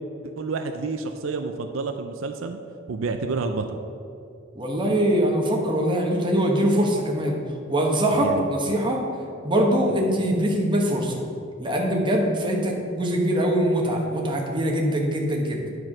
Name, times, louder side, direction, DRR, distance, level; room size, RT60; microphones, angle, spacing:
voice 1, 0.4-2.6 2.9-3.8 8.2-8.5 9.9-10.0, right 4 dB, 75° right, 6 dB, 0.5 m, -29 dB
voice 2, 4.5-7.4 7.7-9.0 9.4-11.2 11.6-15.7, right 1 dB, 25° right, 0 dB, 1.2 m, -23 dB
9.7 x 4.7 x 6.1 m, 2.6 s
head